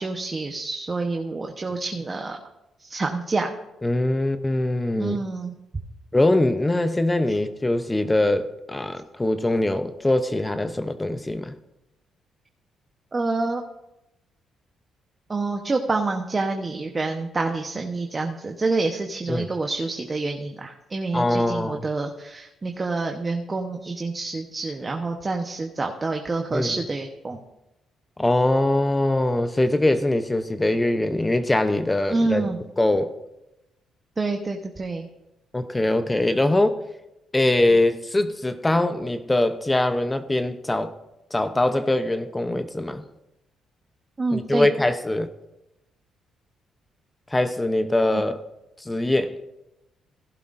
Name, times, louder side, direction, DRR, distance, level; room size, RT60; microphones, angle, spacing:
voice 1, 0.0-2.4 2.8-3.5 5.0-5.5 13.1-13.6 15.3-27.4 32.1-32.6 34.2-35.1 44.2-44.7 48.1-48.2, right 3 dB, 30° right, 3 dB, 1.0 m, -27 dB
voice 2, 3.8-5.2 6.1-11.6 19.3-19.5 21.1-21.8 26.5-26.7 28.2-33.1 35.5-36.8 37.3-40.9 41.3-43.0 44.3-45.3 47.3-48.4 48.8-49.4, left 1 dB, 15° left, 10 dB, 0.7 m, -22 dB
16.0 x 11.0 x 2.6 m, 0.91 s
cardioid pair, 90°, 0 cm